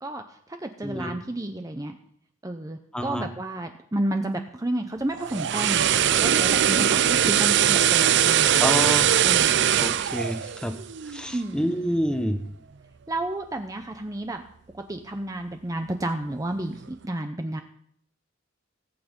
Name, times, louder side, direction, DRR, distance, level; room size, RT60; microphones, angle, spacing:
voice 1, 0.0-1.9 2.4-8.9 9.2-9.6 11.3-11.8 13.1-14.4 14.7-17.6, right 1 dB, 15° right, 5 dB, 0.7 m, -31 dB
voice 2, 2.9-3.3 8.6-9.1 9.8-10.7 11.1-12.4, equal, 5° left, 7 dB, 1.0 m, -28 dB
sound 1, 5.1-11.3 11.6-11.8, right 10 dB, 60° right, 0.5 m, -21 dB
18.0 x 8.5 x 5.3 m, 0.66 s
head